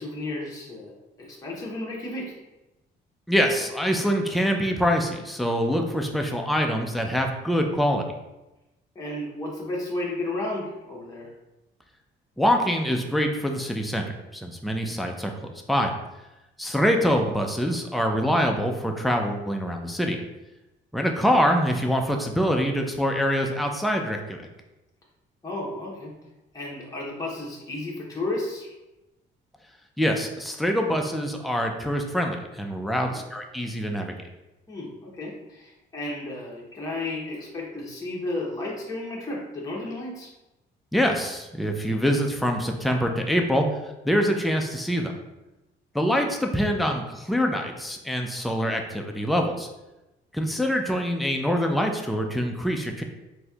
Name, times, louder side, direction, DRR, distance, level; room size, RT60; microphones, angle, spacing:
voice 1, 0.0-2.3 8.9-11.3 25.4-26.1 26.5-28.7 33.0-33.2 34.7-40.3, left 2 dB, 15° left, -4 dB, 0.9 m, -33 dB
voice 2, 3.3-8.0 12.4-14.0 14.3-15.3 15.7-15.9 16.6-20.2 20.9-24.4 30.0-34.2 40.9-43.7 44.0-45.1 45.9-49.7 50.3-53.0, equal, ahead, 3 dB, 0.4 m, -24 dB
4.1 x 2.7 x 2.3 m, 1.0 s
cardioid pair, 90°, 20 cm